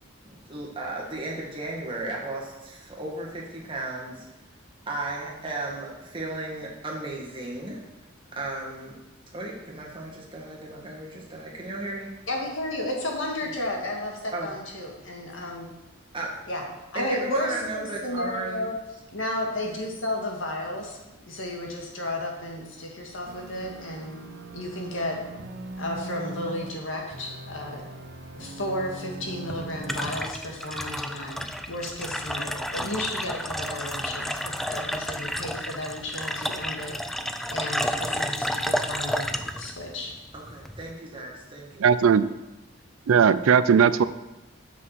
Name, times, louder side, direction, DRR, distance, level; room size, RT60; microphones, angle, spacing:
voice 1, 0.2-4.2 4.9-7.8 8.3-8.9 9.3-12.1 14.3-14.5 16.1-16.3 16.9-18.7 40.3-41.9, right 2 dB, 25° right, -3 dB, 1.9 m, -35 dB
voice 2, 12.3-15.7 16.5-16.6 16.9-18.7 19.1-24.2 24.5-25.2 25.8-27.9 28.3-37.0 37.5-40.1, left 1 dB, 65° left, 0 dB, 1.9 m, -33 dB
sound 1, 23.3-26.7 27.1-30.1, right 2 dB, 55° right, 0.9 m, -40 dB
sound 2, 29.2-40.9, equal, ahead, 0.3 m, -31 dB
voice 3, 41.8-42.3 43.1-44.0, right 7 dB, 75° right, 14 dB, 0.4 m, -18 dB
7.6 x 6.1 x 5.9 m, 1.0 s
head